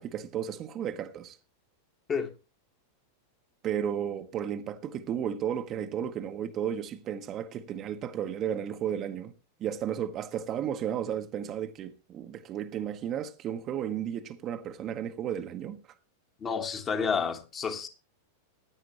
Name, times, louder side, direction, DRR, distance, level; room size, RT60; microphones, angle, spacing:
voice 1, 0.0-1.4 3.6-9.3 9.6-15.8, right 9 dB, 30° right, 1.0 m, -33 dB
voice 2, 16.4-17.9, left 6 dB, 25° left, 1.5 m, -30 dB
15.5 x 10.0 x 3.0 m
figure-of-eight pair, 90°, 0 cm